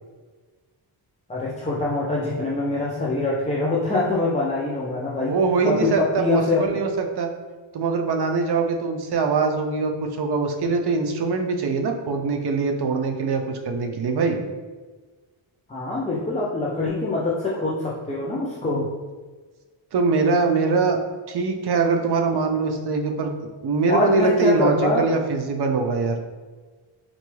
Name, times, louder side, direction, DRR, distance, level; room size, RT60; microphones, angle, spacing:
voice 1, 1.3-5.3 5.6-6.8 15.7-18.9 23.9-25.1, left 2 dB, 15° left, -6 dB, 0.3 m, -24 dB
voice 2, 5.2-7.3 7.7-14.4 19.9-21.0 21.3-23.3 23.6-26.2, right 4 dB, 55° right, 4 dB, 0.5 m, -23 dB
3.8 x 2.3 x 3.1 m, 1.4 s
wide cardioid pair, 100°, 49 cm